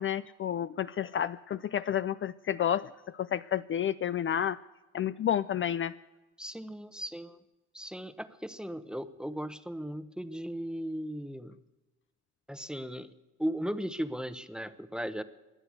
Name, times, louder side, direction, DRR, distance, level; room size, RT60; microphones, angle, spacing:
voice 1, 0.0-4.6 4.9-5.9, left 9 dB, 45° left, 14 dB, 0.4 m, -30 dB
voice 2, 6.4-7.4 7.7-11.6 12.5-13.1 13.4-15.2, equal, 5° right, 12 dB, 0.9 m, -37 dB
22.0 x 8.0 x 8.1 m, 1.1 s
cardioid pair, 90°, 30 cm